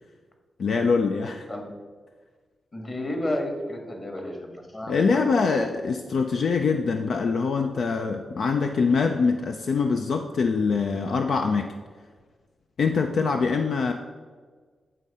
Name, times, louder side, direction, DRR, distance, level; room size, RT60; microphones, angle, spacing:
voice 1, 0.6-1.5 4.9-11.7 12.8-13.9, left 5 dB, 70° left, 5 dB, 0.4 m, -24 dB
voice 2, 2.7-5.3, left 1 dB, 35° left, 3 dB, 1.7 m, -32 dB
9.3 x 3.7 x 5.4 m, 1.5 s
cardioid pair, 75°, 0 cm